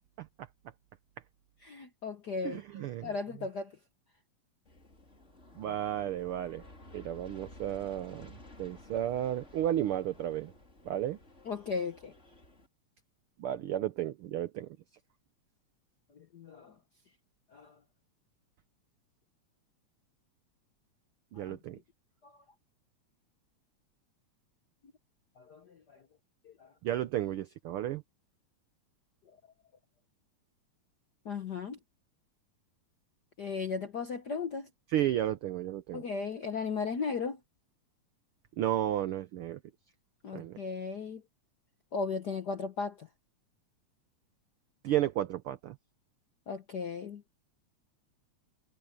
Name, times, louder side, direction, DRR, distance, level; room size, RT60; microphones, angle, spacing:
voice 1, 1.6-3.8 5.6-5.8 11.5-12.1 16.1-16.7 17.5-17.8 21.4-21.6 22.2-22.3 25.4-26.0 26.4-26.7 31.2-31.8 33.4-34.7 35.9-37.4 40.2-41.2 41.9-43.1 46.5-47.2, left 5 dB, 65° left, 1.0 m, -36 dB
voice 2, 2.4-3.1 5.6-6.7 6.9-10.5 10.8-11.2 13.4-14.8 21.3-21.8 26.8-28.0 34.9-36.0 38.6-39.6 40.3-40.6 44.8-45.8, right 12 dB, 80° right, 1.2 m, -33 dB
Aircraft, 4.6-12.7, left 2 dB, 25° left, 4.4 m, -54 dB
omnidirectional pair, 3.3 m